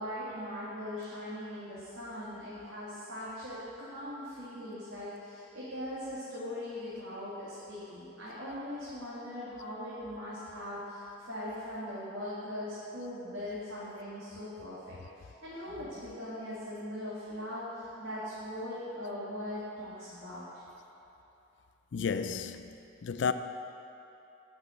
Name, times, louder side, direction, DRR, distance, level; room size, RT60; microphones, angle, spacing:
voice 1, 0.0-20.6, left 1 dB, 70° right, 2.0 m, -40 dB
voice 2, 21.9-22.7 23.0-23.3, left 6 dB, 60° left, 0.4 m, -31 dB
8.7 x 6.0 x 7.8 m
head